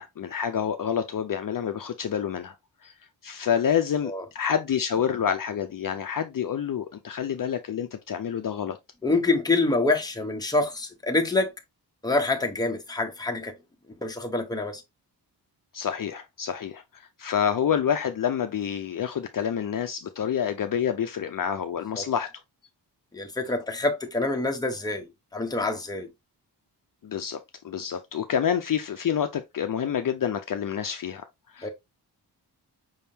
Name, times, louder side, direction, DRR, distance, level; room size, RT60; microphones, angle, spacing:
voice 1, 0.0-2.5 2.8-2.9 3.2-8.8 15.7-22.3 27.0-27.4 27.6-31.2 31.5-31.7, left 8 dB, 50° left, 0.6 m, -28 dB
voice 2, 9.0-11.5 12.0-13.5 14.0-14.8 22.0-22.1 23.1-25.1 25.3-26.1 31.6-31.7, left 2 dB, 10° left, 0.9 m, -26 dB
5.4 x 3.5 x 2.8 m
wide cardioid pair, 145°, 42 cm